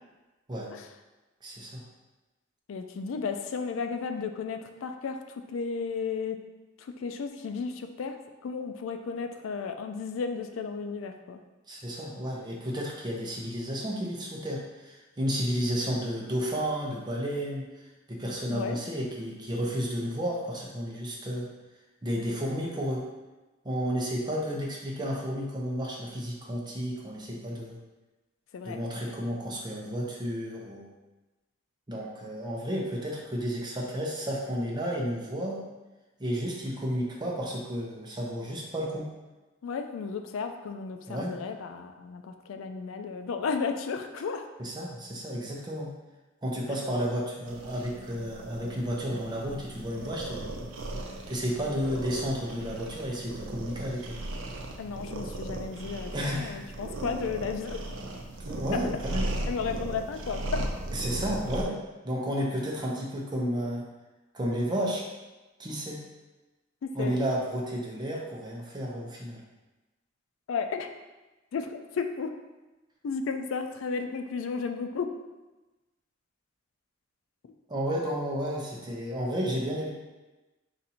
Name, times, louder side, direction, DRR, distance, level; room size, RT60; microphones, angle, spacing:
voice 1, 1.4-1.8 11.7-17.7 18.1-21.5 22.0-23.0 23.6-27.8 28.6-30.9 31.9-35.6 36.2-39.1 41.1-41.4 44.6-45.9 46.4-50.7 51.3-54.2 56.1-56.6 58.4-59.5 60.9-61.8 62.0-63.8 64.3-65.0 65.6-66.0 66.9-69.4 77.7-79.9, equal, 20° right, -2 dB, 0.7 m, -32 dB
voice 2, 2.7-5.2 5.5-6.4 6.8-8.2 8.4-11.4 18.5-18.8 28.5-28.8 39.6-44.4 54.8-57.9 59.5-60.6 66.8-67.2 70.5-70.9 71.5-72.3 73.0-75.2, left 5 dB, 85° left, 7 dB, 0.4 m, -33 dB
sound 1, 47.4-61.6, right 1 dB, 75° right, 0.5 m, -37 dB
4.0 x 2.5 x 4.2 m, 1.1 s
head